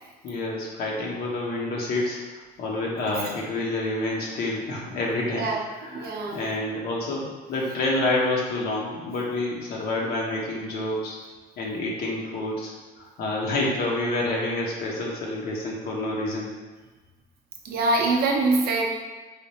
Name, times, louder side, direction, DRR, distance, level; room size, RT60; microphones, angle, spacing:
voice 1, 0.2-5.5 5.8-11.2 11.6-12.7 13.0-16.5, left 2 dB, 65° left, -3 dB, 0.7 m, -28 dB
voice 2, 5.9-6.4 17.6-18.8, right 3 dB, 65° right, 0 dB, 0.7 m, -23 dB
3.3 x 2.1 x 3.9 m, 1.3 s
cardioid pair, 110°, 17 cm